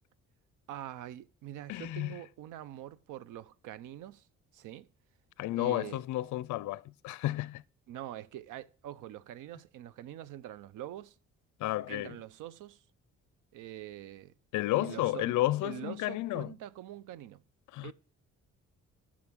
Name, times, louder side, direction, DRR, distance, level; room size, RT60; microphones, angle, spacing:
voice 1, 0.7-4.3 4.5-4.9 5.5-6.0 7.9-11.1 11.9-12.8 13.5-14.3 14.7-15.4 15.6-17.4 17.8-17.9, right 12 dB, 85° right, 0.7 m, -44 dB
voice 2, 1.7-2.2 5.4-7.6 11.6-12.2 14.5-16.5 17.7-17.9, left 16 dB, 75° left, 0.5 m, -32 dB
9.7 x 6.1 x 6.1 m
cardioid pair, 90°, 30 cm